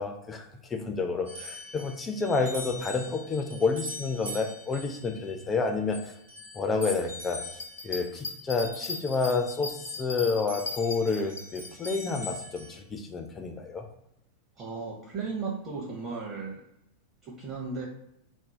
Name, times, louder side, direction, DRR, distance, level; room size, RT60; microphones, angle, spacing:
voice 1, 0.0-6.1 6.5-7.4 7.8-13.8, left 4 dB, 20° left, 4 dB, 0.3 m, -29 dB
sound 1, 1.3-10.2 10.5-12.8, left 1 dB, 70° right, 0.9 m, -43 dB
sound 2, 7.5-11.9, left 3 dB, 70° left, 0.6 m, -38 dB
voice 2, 14.6-16.6 17.2-17.9, right 4 dB, 30° right, -3 dB, 0.6 m, -35 dB
2.5 x 2.0 x 3.2 m, 0.79 s
figure-of-eight pair, 90°, 0 cm